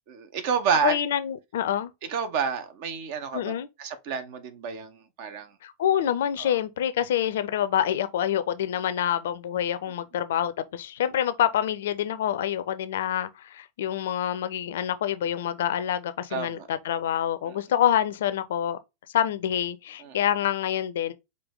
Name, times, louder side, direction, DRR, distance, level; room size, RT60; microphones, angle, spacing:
voice 1, 0.1-1.0 2.1-3.5 3.8-5.5 6.4-6.5 16.3-16.7 17.5-17.6 20.0-20.2, right 6 dB, 50° right, 0.9 m, -29 dB
voice 2, 0.8-1.9 3.3-3.7 5.6-18.8 19.1-21.1, left 10 dB, 60° left, 0.5 m, -26 dB
5.2 x 2.8 x 3.6 m
figure-of-eight pair, 90°, 0 cm